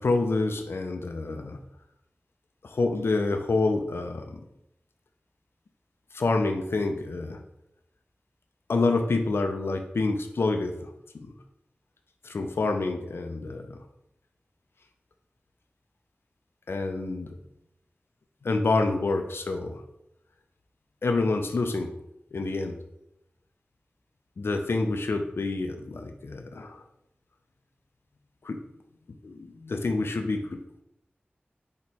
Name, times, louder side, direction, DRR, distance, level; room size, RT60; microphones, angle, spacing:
voice 1, 0.0-1.6 2.6-4.4 6.1-7.4 8.7-11.3 12.2-13.8 16.7-17.4 18.4-19.8 21.0-22.0 22.3-22.8 24.4-26.8 28.4-28.6 29.2-30.6, left 3 dB, 90° left, 5 dB, 0.4 m, -27 dB
4.4 x 2.9 x 4.1 m, 0.82 s
wide cardioid pair, 45°, 4 cm